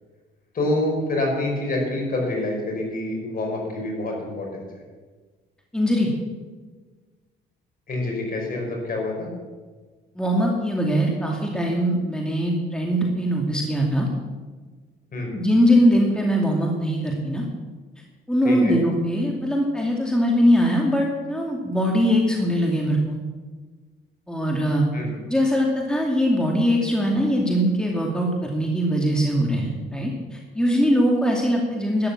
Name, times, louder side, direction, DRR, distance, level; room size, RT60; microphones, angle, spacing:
voice 1, 0.5-4.7 7.9-9.3 15.1-15.4 18.4-18.8 24.9-25.1, left 2 dB, 45° left, 0 dB, 5.5 m, -26 dB
voice 2, 5.7-6.1 10.2-14.1 15.3-17.5 18.3-23.2 24.3-24.8 25.3-32.1, equal, 5° left, -1 dB, 2.4 m, -21 dB
12.5 x 10.0 x 7.3 m, 1.4 s
cardioid pair, 90°, 20 cm